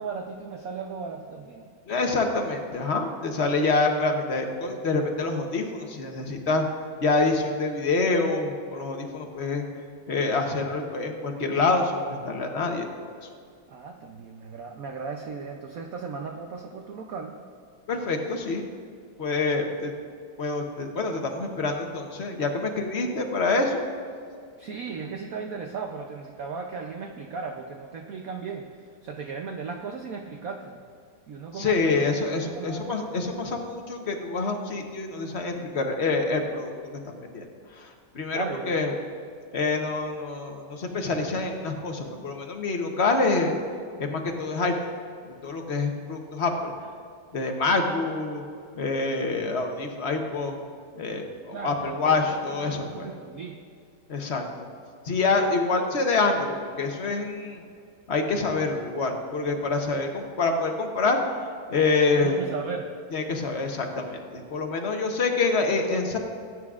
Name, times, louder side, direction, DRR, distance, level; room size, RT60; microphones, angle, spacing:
voice 1, 0.0-1.7 13.7-17.4 24.6-30.8 31.3-33.0 38.3-38.8 51.5-52.4 52.8-53.6 62.1-62.9, right 5 dB, 65° right, 3 dB, 0.9 m, -36 dB
voice 2, 1.9-6.6 7.0-9.6 10.1-13.1 17.9-18.6 19.2-19.9 20.4-23.8 31.5-36.7 37.0-37.5 37.8-38.9 39.5-43.6 44.0-44.7 45.4-46.7 47.3-48.4 48.8-50.6 51.0-53.1 54.1-54.4 55.0-57.6 58.1-61.2 61.7-62.4 63.1-66.2, left 3 dB, 45° left, 3 dB, 0.9 m, -26 dB
19.5 x 9.4 x 2.4 m, 2.3 s
omnidirectional pair, 2.1 m